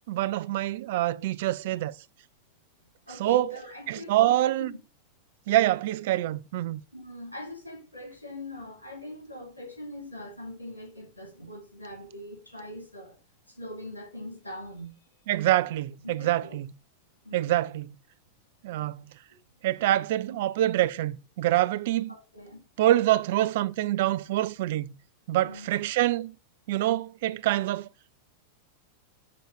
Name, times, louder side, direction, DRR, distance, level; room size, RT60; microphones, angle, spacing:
voice 1, 0.1-1.9 3.2-3.5 3.9-4.7 5.5-6.8 15.3-16.7 17.3-17.9 18.6-19.0 19.6-22.1 22.8-24.9 25.3-26.3 26.7-27.9, right 14 dB, 55° right, 0.4 m, -25 dB
voice 2, 3.1-4.7 6.9-13.2 13.5-15.2 16.0-16.6 17.2-17.6 20.3-20.4 22.1-22.6 25.3-25.8, left 1 dB, 85° left, 3.5 m, -42 dB
6.7 x 3.9 x 6.4 m
figure-of-eight pair, 90°, 0 cm